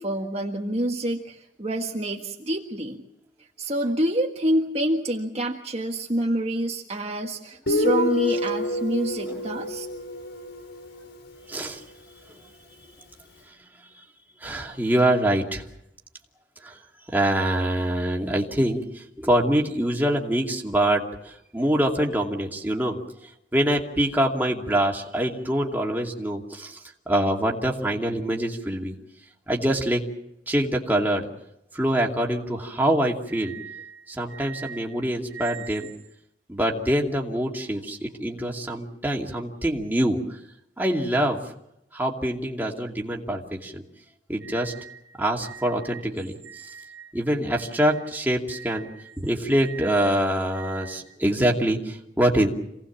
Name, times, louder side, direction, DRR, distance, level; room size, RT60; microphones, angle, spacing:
voice 1, 0.0-3.0 3.6-9.9, right 1 dB, 35° right, 0 dB, 1.6 m, -27 dB
Guitar, 7.7-11.2, left 1 dB, 75° left, 3.8 m, -27 dB
voice 2, 11.5-11.8 14.4-15.6 16.6-16.8 17.1-23.0 23.5-26.8 27.1-29.0 29.5-30.0 30.5-31.3 31.7-35.9 36.5-40.2 40.8-41.4 41.9-43.8 44.3-52.5, right 1 dB, 10° right, -1 dB, 2.5 m, -25 dB
27.5 x 18.0 x 7.3 m, 0.80 s
head